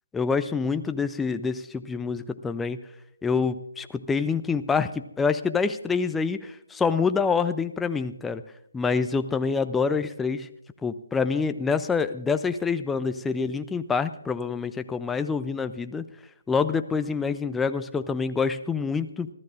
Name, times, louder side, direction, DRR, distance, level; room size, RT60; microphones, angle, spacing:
voice 1, 0.1-2.8 3.2-8.4 8.7-10.5 10.8-16.1 16.5-19.3, left 5 dB, 5° left, 10 dB, 0.4 m, -26 dB
29.0 x 12.5 x 2.5 m, 0.86 s
figure-of-eight pair, 145°, 0 cm